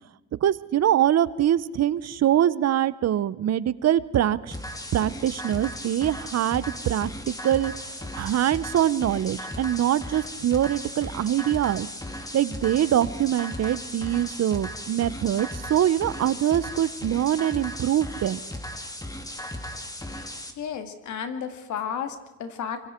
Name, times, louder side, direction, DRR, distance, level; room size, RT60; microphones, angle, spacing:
voice 1, 0.4-4.5 4.9-7.7 8.1-11.9 12.3-18.4, right 11 dB, 60° right, 18 dB, 0.8 m, -24 dB
sound 1, 4.5-20.5, left 1 dB, 10° left, 2.5 m, -36 dB
voice 2, 20.6-22.9, left 7 dB, 75° left, 8 dB, 2.2 m, -33 dB
25.0 x 24.0 x 4.5 m, 1.1 s
cardioid pair, 90°, 30 cm